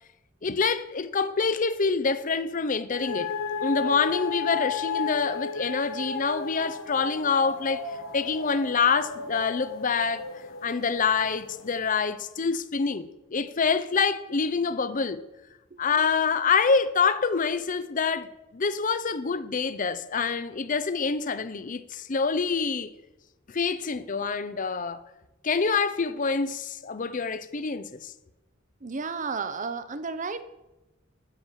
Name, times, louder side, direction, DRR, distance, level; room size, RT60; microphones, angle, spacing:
voice 1, 0.4-3.3 3.6-7.9 8.1-10.3 10.6-15.2 15.8-22.9 23.5-25.0 25.4-28.1, left 5 dB, 40° left, 0.7 m, -26 dB
sound 1, 2.9-11.8, left 5 dB, 80° left, 1.3 m, -34 dB
voice 2, 28.8-30.4, right 4 dB, 40° right, 0.7 m, -32 dB
9.9 x 7.3 x 7.4 m
head